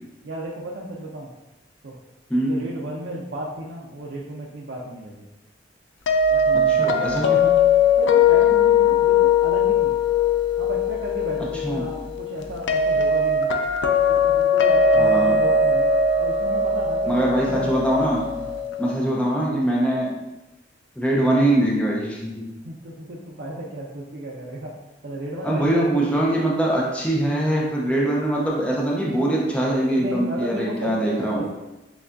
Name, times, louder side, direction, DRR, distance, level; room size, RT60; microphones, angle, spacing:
voice 1, 0.2-1.3 1.8-2.0 2.5-5.3 6.3-7.5 8.0-10.0 10.6-13.5 14.1-15.9 16.2-17.1 17.4-17.8 18.4-18.6 22.6-24.7 25.0-26.0 29.9-31.5, right 1 dB, 65° right, -4 dB, 0.5 m, -33 dB
voice 2, 2.3-2.7 6.7-7.5 11.6-11.9 15.0-15.3 17.1-18.3 18.8-20.1 21.0-22.5 25.4-31.5, right 1 dB, 5° left, -4 dB, 0.6 m, -22 dB
sound 1, 6.1-18.9, left 4 dB, 85° left, 0.4 m, -20 dB
6.9 x 2.3 x 2.5 m, 1.0 s
head